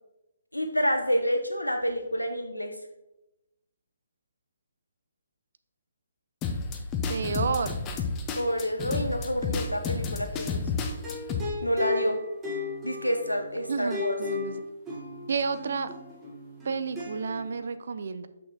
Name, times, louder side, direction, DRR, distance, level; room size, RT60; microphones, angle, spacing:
voice 1, 0.5-2.7 8.4-10.6 11.6-12.2 12.8-14.2, equal, 90° left, 5 dB, 0.6 m, -28 dB
sound 1, 6.4-11.4, left 5 dB, 20° left, 0.5 m, -31 dB
voice 2, 7.1-7.8 13.7-14.6 15.3-15.9 16.6-18.3, right 5 dB, 55° right, 12 dB, 0.4 m, -30 dB
sound 2, 10.9-17.6, left 5 dB, 15° right, 1.2 m, -36 dB
6.2 x 5.7 x 2.8 m, 0.93 s
figure-of-eight pair, 135°, 0 cm